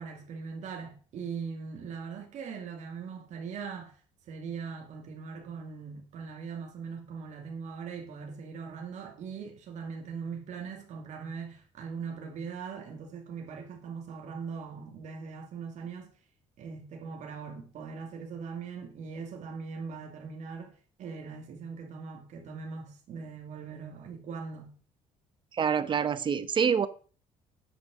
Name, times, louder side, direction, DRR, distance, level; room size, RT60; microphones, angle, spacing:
voice 1, 0.0-3.9 4.3-16.1 16.6-24.8, right 5 dB, 65° right, 2.7 m, -40 dB
voice 2, 25.5-26.9, right 7 dB, 35° right, 1.0 m, -26 dB
10.0 x 6.4 x 6.4 m
cardioid pair, 120°, 13 cm